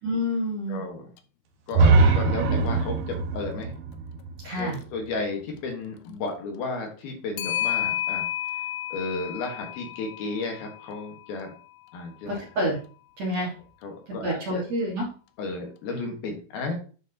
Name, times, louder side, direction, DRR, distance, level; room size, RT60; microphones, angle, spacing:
voice 1, 0.0-0.8 4.4-4.8 12.3-12.8 13.2-13.5 14.2-15.1, equal, 55° right, -4 dB, 2.1 m, -28 dB
voice 2, 0.7-1.1 1.7-3.7 4.6-8.3 8.9-11.5 11.9-12.4 13.4-13.5 13.8-14.6 15.4-16.7, left 3 dB, 70° left, 2 dB, 2.9 m, -33 dB
Clock, 1.2-1.3 1.7-1.8 4.6-4.8 7.4-11.6, left 13 dB, 85° left, 2.2 m, -32 dB
sound 1, 1.7-5.6, right 3 dB, 80° right, 3.0 m, -22 dB
10.0 x 4.6 x 2.8 m, 0.37 s
omnidirectional pair, 4.8 m